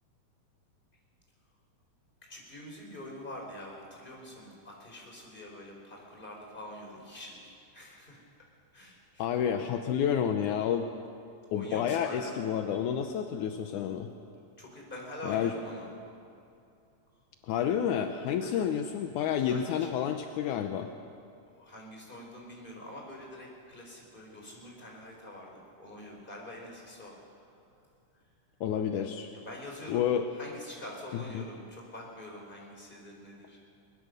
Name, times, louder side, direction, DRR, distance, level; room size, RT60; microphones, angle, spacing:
voice 1, 2.3-8.2 8.7-9.2 11.5-12.4 14.6-15.9 18.4-18.7 19.4-20.0 21.5-27.5 29.3-33.6, left 1 dB, 15° left, -1 dB, 4.5 m, -45 dB
voice 2, 9.2-10.9 11.5-14.1 15.3-15.5 17.4-20.9 28.6-29.3 29.9-30.3 31.1-31.5, left 8 dB, 75° left, 6 dB, 2.2 m, -30 dB
22.5 x 20.5 x 6.7 m, 2.5 s
omnidirectional pair, 3.7 m